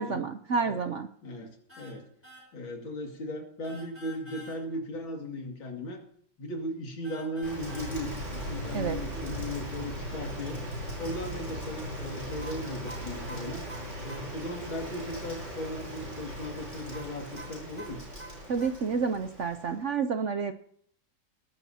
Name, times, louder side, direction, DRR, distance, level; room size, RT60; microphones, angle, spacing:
voice 1, 0.0-1.1 8.7-9.0 18.5-20.5, right 5 dB, 70° right, 8 dB, 0.7 m, -29 dB
voice 2, 1.2-2.1 2.5-6.0 6.4-10.6 11.0-13.7 14.0-18.1, left 1 dB, 85° left, 2 dB, 3.1 m, -37 dB
sound 1, 1.7-2.0 2.2-2.5 3.6-4.6 7.0-7.9 12.4-14.3 16.9-18.7, right 1 dB, 5° right, 3.9 m, -47 dB
Rain, 7.4-19.8, equal, 25° right, 6.3 m, -38 dB
21.0 x 12.5 x 2.8 m, 0.62 s
omnidirectional pair, 2.1 m